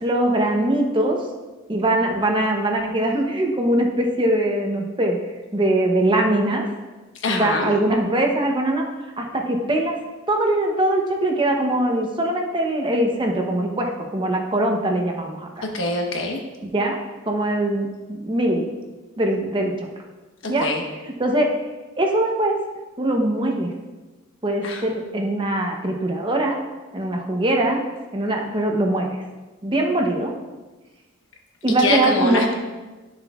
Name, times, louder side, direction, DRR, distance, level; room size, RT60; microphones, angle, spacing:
voice 1, 0.0-1.2 1.7-5.2 5.5-6.7 7.3-8.8 9.2-10.0 10.3-15.6 16.6-17.0 17.3-18.7 19.2-19.7 20.5-20.7 21.2-21.5 22.0-22.6 23.0-23.7 24.4-26.6 26.9-27.8 28.1-29.1 29.6-30.3 31.6-32.4, right 1 dB, 25° right, 2 dB, 0.8 m, -22 dB
voice 2, 7.2-7.7 15.7-16.4 20.4-20.8 24.6-24.8 31.8-32.5, left 2 dB, 65° left, 1 dB, 1.2 m, -23 dB
11.0 x 7.0 x 2.4 m, 1.2 s
head